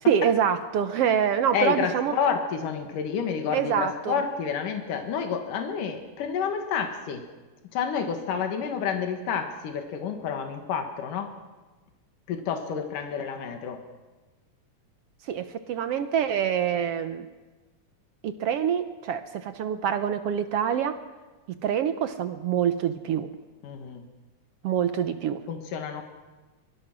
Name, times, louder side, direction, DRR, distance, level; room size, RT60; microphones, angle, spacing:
voice 1, 0.1-2.1 3.5-4.1 15.2-17.3 18.2-21.0 21.6-23.3 24.6-25.4, right 8 dB, 70° right, 10 dB, 1.5 m, -26 dB
voice 2, 1.5-7.2 7.7-11.3 12.3-13.8 23.6-24.0 25.5-26.0, left 7 dB, 80° left, 5 dB, 3.3 m, -29 dB
23.5 x 22.5 x 6.1 m, 1.2 s
omnidirectional pair, 3.7 m